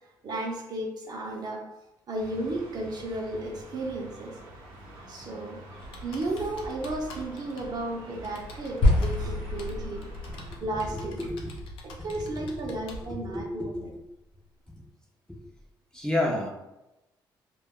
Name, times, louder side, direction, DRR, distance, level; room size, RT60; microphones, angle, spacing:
voice 1, 0.2-1.6 2.1-4.4 5.1-5.6 6.0-10.1 10.6-11.3 12.0-13.9, right 2 dB, 50° right, 0 dB, 0.7 m, -34 dB
sound 1, 2.2-10.6, right 1 dB, 90° right, 0.7 m, -47 dB
Computer keyboard, 5.8-13.1, equal, 85° left, 0.5 m, -44 dB
sound 2, 8.8-13.2, left 1 dB, 65° left, 0.8 m, -29 dB
voice 2, 10.9-11.7 12.2-12.5 13.2-13.9 15.3-15.4 15.9-16.5, left 1 dB, 10° left, -1 dB, 0.6 m, -31 dB
2.3 x 2.1 x 3.6 m, 0.93 s
cardioid pair, 80°, 9 cm